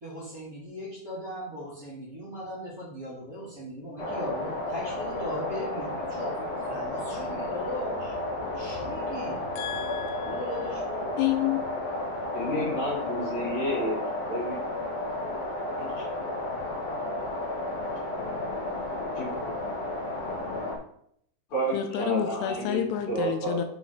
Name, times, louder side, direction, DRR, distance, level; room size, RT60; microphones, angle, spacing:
voice 1, 0.0-8.1 8.5-9.4 10.3-11.1, equal, 25° right, -9 dB, 2.9 m, -38 dB
sound 1, 4.0-20.8, left 1 dB, 70° left, 1.4 m, -32 dB
voice 2, 9.6-10.4 11.2-11.6 21.7-23.6, left 11 dB, 85° left, 6 dB, 2.7 m, -29 dB
voice 3, 12.3-14.0 14.3-14.6 15.8-15.9 19.2-19.4 21.5-23.7, right 1 dB, 50° left, -5 dB, 2.9 m, -30 dB
5.8 x 5.0 x 4.0 m, 0.67 s
omnidirectional pair, 4.8 m